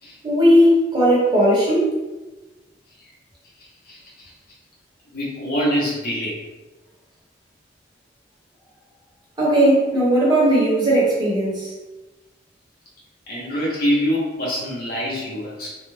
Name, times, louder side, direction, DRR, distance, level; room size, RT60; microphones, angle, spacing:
voice 1, 0.2-2.0 9.4-11.7, equal, 25° right, -8 dB, 0.9 m, -17 dB
voice 2, 5.1-6.4 13.3-15.7, equal, 55° left, -6 dB, 0.8 m, -24 dB
2.3 x 2.1 x 3.2 m, 1.1 s
head